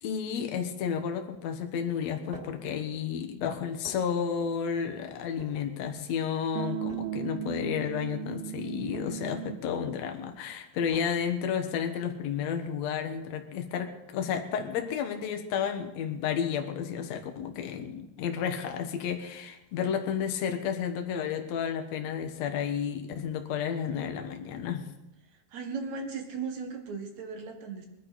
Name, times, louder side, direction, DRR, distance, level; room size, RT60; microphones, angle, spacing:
voice 1, 0.0-24.9, left 7 dB, 60° left, 5 dB, 1.9 m, -32 dB
sound 1, 2.3-13.4, equal, 20° right, 3.6 m, -52 dB
sound 2, 6.5-9.7, right 12 dB, 80° right, 2.2 m, -36 dB
voice 2, 25.5-27.9, right 5 dB, 55° right, 4 dB, 2.4 m, -37 dB
22.5 x 11.0 x 4.2 m, 0.93 s
omnidirectional pair, 4.6 m